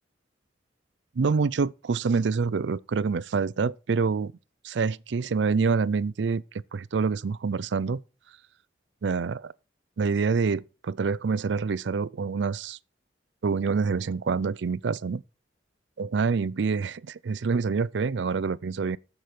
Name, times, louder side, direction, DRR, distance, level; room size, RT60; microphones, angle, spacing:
voice 1, 1.2-4.3 4.6-6.4 6.7-8.0 9.0-9.5 10.0-12.8 13.4-15.2 16.0-19.0, right 5 dB, 75° right, 0.5 m, -26 dB
14.0 x 6.0 x 5.0 m
head